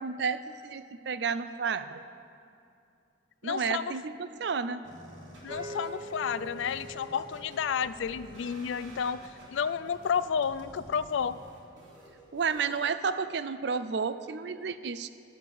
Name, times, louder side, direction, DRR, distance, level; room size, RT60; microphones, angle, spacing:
voice 1, 0.0-2.0 3.4-4.1 4.4-4.8 12.3-15.1, right 5 dB, 60° right, 13 dB, 0.4 m, -31 dB
voice 2, 3.4-4.0 5.4-9.2 9.5-11.4, left 7 dB, 75° left, 16 dB, 0.4 m, -31 dB
sound 1, 4.8-12.8, equal, 90° right, 3.0 m, -52 dB
sound 2, 5.5-11.5, right 1 dB, 20° right, 1.0 m, -46 dB
11.5 x 7.1 x 8.2 m, 2.5 s
head